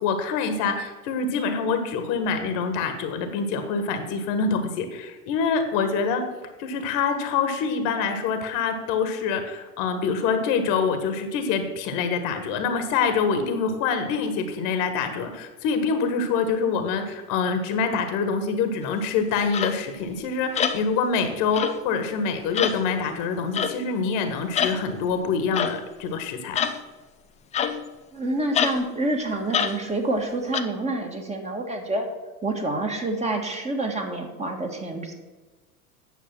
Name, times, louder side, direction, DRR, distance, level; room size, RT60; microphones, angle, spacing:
voice 1, 0.0-6.2 6.6-26.6, left 5 dB, 45° left, 8 dB, 1.4 m, -25 dB
sound 1, 19.5-19.8 20.5-20.8 21.5-21.9 22.5-22.8 23.5-23.8 24.5-24.8 25.5-25.8 26.5-26.8 27.5-28.0 28.5-28.8 29.5-29.8 30.5-30.6, left 7 dB, 15° left, 0.5 m, -25 dB
voice 2, 28.1-32.1 32.4-35.1, right 2 dB, 15° right, 2 dB, 1.5 m, -27 dB
9.6 x 6.8 x 6.0 m, 1.2 s
figure-of-eight pair, 85°, 46 cm